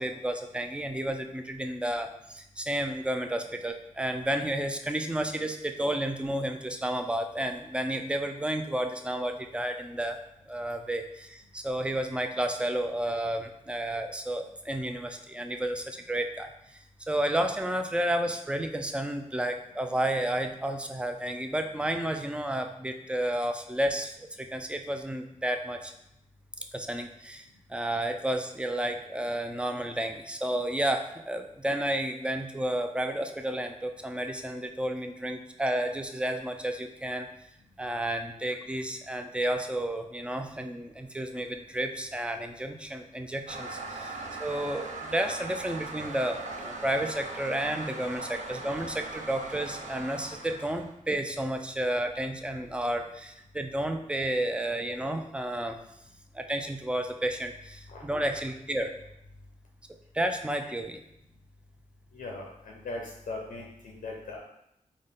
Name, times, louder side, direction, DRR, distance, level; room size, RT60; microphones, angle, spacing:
voice 1, 0.0-10.2 10.5-25.9 26.7-37.3 37.8-55.8 56.3-58.9 60.1-61.0, right 1 dB, 10° right, 5 dB, 0.4 m, -31 dB
Toilet flush, 43.5-51.0, right 3 dB, 60° right, 0.5 m, -40 dB
voice 2, 62.1-64.4, left 2 dB, 85° left, -1 dB, 0.6 m, -39 dB
3.8 x 2.1 x 3.5 m, 0.79 s
cardioid pair, 65°, 14 cm